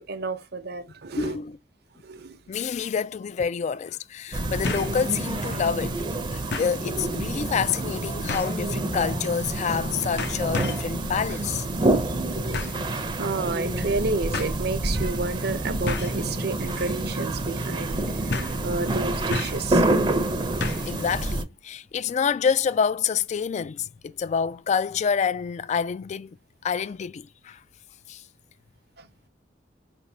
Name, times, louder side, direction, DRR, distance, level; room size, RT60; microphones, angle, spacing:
voice 1, 0.0-1.4 2.0-2.4 12.1-12.2 13.2-18.3 18.6-19.9 29.0-29.1, right 3 dB, 60° right, 0.8 m, -30 dB
voice 2, 1.2-1.6 2.5-6.0 6.3-11.7 20.9-26.4 26.6-27.6 28.1-28.2, left 6 dB, 40° left, 0.3 m, -27 dB
sound 1, 4.3-21.4, right 2 dB, 25° right, 0.6 m, -27 dB
sound 2, 4.6-5.0 5.4-5.5 6.5-6.8 8.3-8.6 9.6-9.8 10.2-10.9 12.5-12.8 13.8-13.9 14.3-14.5 15.9-16.2 16.7-17.0 17.2-17.3 18.3-18.6 19.3-19.7 20.6-21.0 21.3-21.4, left 4 dB, 65° left, 0.7 m, -32 dB
4.9 x 3.4 x 2.7 m
head